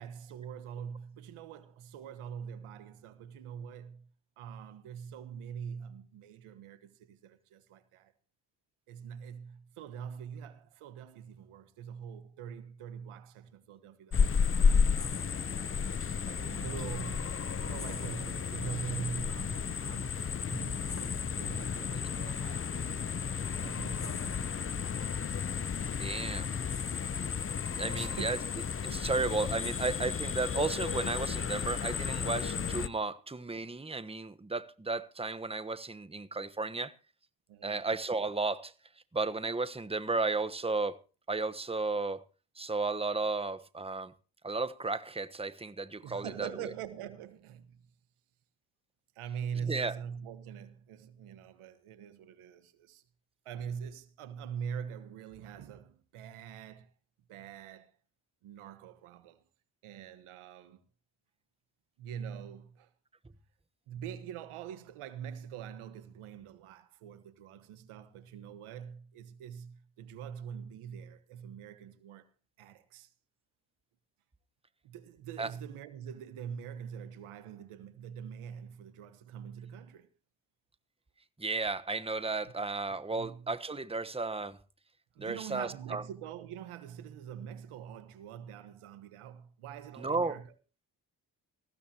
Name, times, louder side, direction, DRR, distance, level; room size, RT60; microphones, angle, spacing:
voice 1, 0.0-4.1 4.4-8.1 8.9-14.4 14.6-16.0 16.2-23.2 23.5-24.9 28.0-28.4 37.5-37.8 46.0-47.8 49.1-53.0 53.4-56.9 57.3-57.9 58.4-59.4 59.8-60.8 62.0-62.9 63.9-72.3 72.6-73.1 74.8-80.1 83.1-83.5 85.1-90.5, right 8 dB, 85° right, 1.5 m, -44 dB
sound 1, 14.1-32.9, left 6 dB, 25° left, 0.7 m, -32 dB
voice 2, 25.9-26.5 27.8-28.4 28.8-36.9 37.6-38.7 39.1-41.0 41.3-42.2 42.6-44.1 44.4-46.5 49.7-50.0 75.4-75.5 81.4-84.6 85.2-86.0 90.0-90.4, right 3 dB, 10° right, 1.2 m, -34 dB
19.5 x 15.5 x 2.9 m
supercardioid pair, 45°, 49 cm